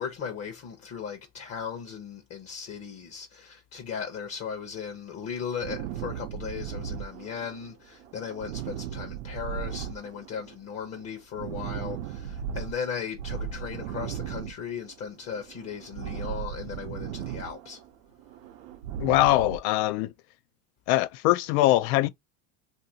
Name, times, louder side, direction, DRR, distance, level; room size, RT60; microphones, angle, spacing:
voice 1, 0.0-17.8, left 7 dB, 40° left, 0.7 m, -37 dB
sound 1, 5.6-7.7 8.0-10.6 10.8-12.8 13.1-15.1 15.3-17.9 18.2-19.6, right 9 dB, 90° right, 0.7 m, -37 dB
voice 2, 19.0-20.1 20.9-22.1, left 16 dB, 70° left, 0.5 m, -22 dB
2.8 x 2.6 x 2.6 m
supercardioid pair, 120°, 40 cm